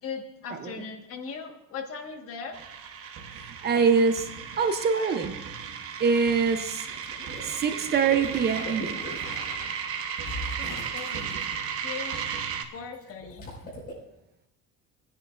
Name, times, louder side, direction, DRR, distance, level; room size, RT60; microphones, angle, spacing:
voice 1, 0.0-2.6 10.5-10.7 10.9-11.4 11.8-12.2 12.7-13.5, left 5 dB, 50° left, 3 dB, 1.6 m, -38 dB
sound 1, 2.5-12.6, right 7 dB, 50° right, 1.0 m, -35 dB
voice 2, 3.4-4.3 4.6-5.3 6.0-6.9 7.4-8.9, right 5 dB, 35° right, 8 dB, 0.7 m, -24 dB
Water / Liquid, 6.9-9.3 10.4-11.4 12.9-13.9, equal, 30° left, 5.4 m, -41 dB
sound 2, 7.2-10.9 13.1-13.3, left 1 dB, 80° left, 4.6 m, -42 dB
21.5 x 10.0 x 2.5 m, 0.87 s
cardioid pair, 170°, 30 cm